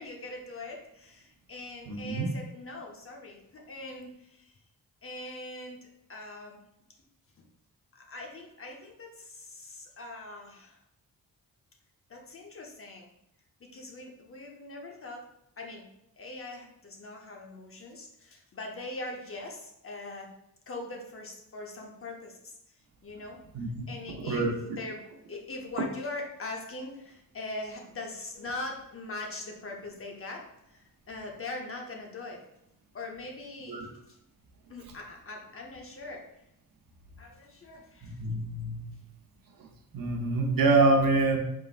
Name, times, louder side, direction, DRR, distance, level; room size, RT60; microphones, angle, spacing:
voice 1, 0.0-4.6 5.0-6.6 7.9-10.8 12.1-13.1 13.6-15.3 15.6-15.9 16.2-20.3 20.7-22.5 23.0-25.0 25.3-30.4 30.7-32.4 32.9-34.2 34.7-36.2 37.2-38.2, left 2 dB, 40° left, 1 dB, 0.8 m, -41 dB
voice 2, 1.9-2.3 23.5-23.7 24.2-24.5 33.7-33.9 38.0-38.9 39.9-41.4, right 3 dB, 70° right, 2 dB, 0.8 m, -25 dB
4.1 x 3.6 x 2.4 m, 0.81 s
wide cardioid pair, 115°, 35 cm